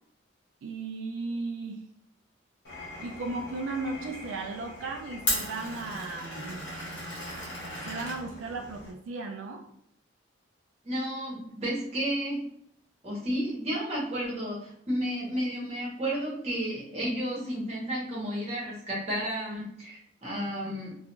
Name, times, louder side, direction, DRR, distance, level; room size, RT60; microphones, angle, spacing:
voice 1, 0.6-1.8 3.0-6.7 7.9-9.7, right 3 dB, 90° right, 3 dB, 0.3 m, -36 dB
Glass, 2.6-8.9, left 1 dB, 65° left, 1.0 m, -37 dB
voice 2, 10.8-12.4 13.0-20.9, equal, 35° right, -5 dB, 1.0 m, -32 dB
2.4 x 2.3 x 2.9 m, 0.70 s
head